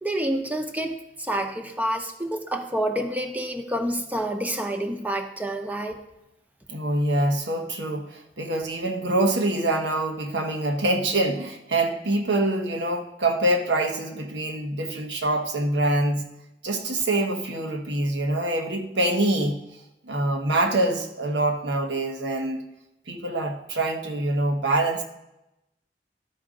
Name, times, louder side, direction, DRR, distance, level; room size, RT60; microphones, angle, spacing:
voice 1, 0.0-6.0, right 1 dB, 10° right, 5 dB, 0.7 m, -28 dB
voice 2, 6.7-16.3 16.6-19.6 20.0-22.6 23.1-25.0, right 1 dB, 80° right, 4 dB, 1.1 m, -25 dB
12.5 x 5.0 x 3.7 m, 0.88 s
head